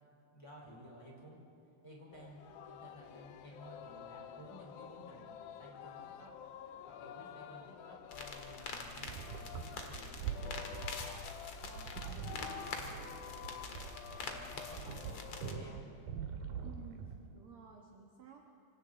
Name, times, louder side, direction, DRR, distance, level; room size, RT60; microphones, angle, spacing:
voice 1, 0.3-1.4 1.8-6.4 6.9-11.2 11.6-13.6 14.1-15.9 16.3-16.7, equal, 10° left, -3 dB, 3.9 m, -55 dB
Singing, 2.1-15.8, left 10 dB, 85° left, 2.6 m, -50 dB
sound 1, 8.1-15.5, left 4 dB, 50° left, 2.1 m, -46 dB
sound 2, 9.0-17.3, right 7 dB, 85° right, 3.3 m, -44 dB
voice 2, 16.6-18.5, right 6 dB, 55° right, 0 dB, 1.7 m, -54 dB
26.0 x 26.0 x 3.9 m, 2.6 s
omnidirectional pair, 4.1 m